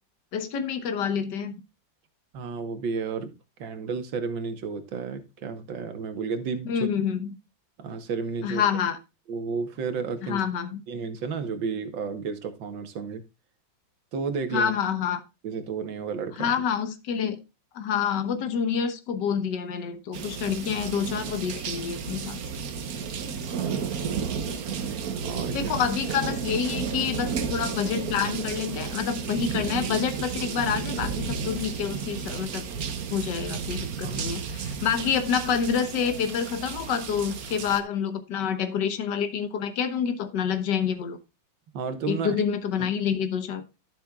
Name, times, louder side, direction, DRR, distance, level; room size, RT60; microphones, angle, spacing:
voice 1, 0.3-1.5 6.7-7.3 8.4-9.0 10.2-10.8 14.5-15.2 16.4-17.4 17.7-22.4 25.5-32.7 33.1-41.2 42.1-43.6, left 7 dB, 65° left, 9 dB, 1.7 m, -27 dB
voice 2, 2.3-3.3 3.6-6.7 7.8-8.6 9.3-10.4 10.9-13.2 14.1-14.7 15.4-16.5 23.4-23.9 25.2-25.7 34.0-34.2 41.7-42.4, right 5 dB, 75° right, 9 dB, 1.9 m, -32 dB
sound 1, 20.1-37.8, right 6 dB, 55° right, 1.3 m, -32 dB
12.0 x 7.7 x 2.3 m, 0.26 s
omnidirectional pair, 2.1 m